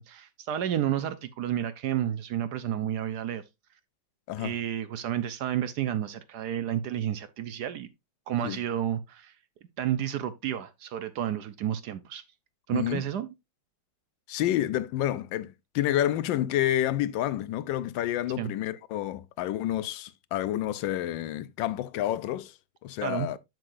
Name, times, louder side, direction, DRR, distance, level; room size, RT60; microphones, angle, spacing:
voice 1, 0.0-3.4 4.4-7.9 8.3-9.3 9.8-12.2 12.7-13.3 18.4-18.5 23.0-23.3, right 11 dB, 70° right, 1.1 m, -31 dB
voice 2, 12.7-13.0 14.3-22.5 22.8-23.4, left 12 dB, 80° left, 1.3 m, -29 dB
7.6 x 7.5 x 2.5 m
omnidirectional pair, 2.0 m